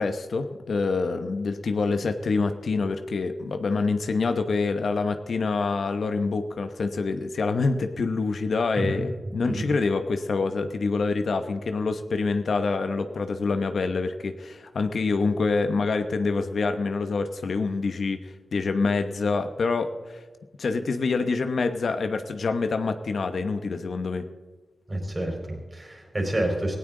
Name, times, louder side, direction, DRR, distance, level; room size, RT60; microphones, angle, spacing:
voice 1, 0.0-20.2 20.6-24.3, left 4 dB, 75° left, 8 dB, 0.9 m, -26 dB
voice 2, 9.3-9.6 24.9-26.8, right 1 dB, 25° right, 1 dB, 4.3 m, -29 dB
18.0 x 17.0 x 3.8 m, 1.3 s
wide cardioid pair, 95°, 0 cm